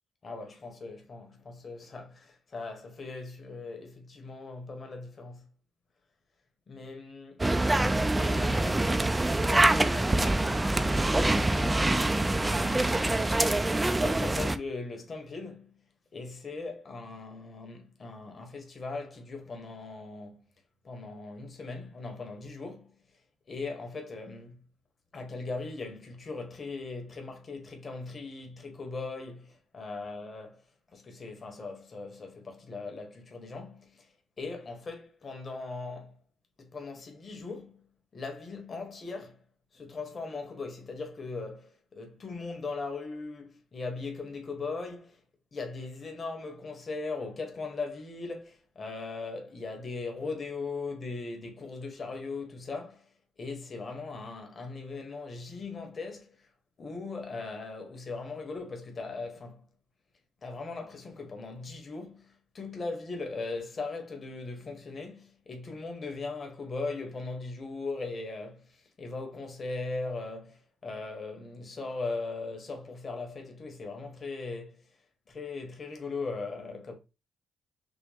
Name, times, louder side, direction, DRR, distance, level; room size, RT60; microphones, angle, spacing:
voice 1, 0.2-5.4 6.7-13.3 13.6-15.8 16.1-20.5 20.8-22.9 23.5-24.6 25.1-30.6 30.9-34.1 34.4-36.2 36.6-37.8 38.1-39.4 39.7-45.2 45.5-53.1 53.4-56.5 56.8-59.6 60.4-74.8 75.3-76.9, left 3 dB, 40° left, 1.4 m, -39 dB
sound 1, 7.4-14.6, right 2 dB, 15° right, 0.5 m, -25 dB
6.1 x 2.2 x 3.5 m
cardioid pair, 90°, 0 cm